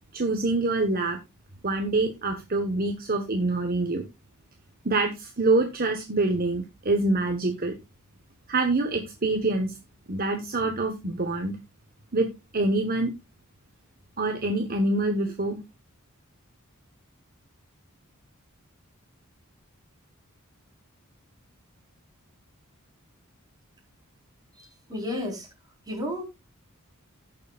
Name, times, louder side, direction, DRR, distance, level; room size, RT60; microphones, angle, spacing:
voice 1, 0.1-1.2 1.6-4.0 4.8-7.8 8.5-9.7 10.1-11.6 12.1-12.3 12.5-13.1 14.2-15.6, right 2 dB, 45° right, 5 dB, 1.3 m, -25 dB
voice 2, 24.9-25.5 25.9-26.2, left 1 dB, 20° right, 0 dB, 4.3 m, -31 dB
17.5 x 7.0 x 2.4 m, 0.22 s
head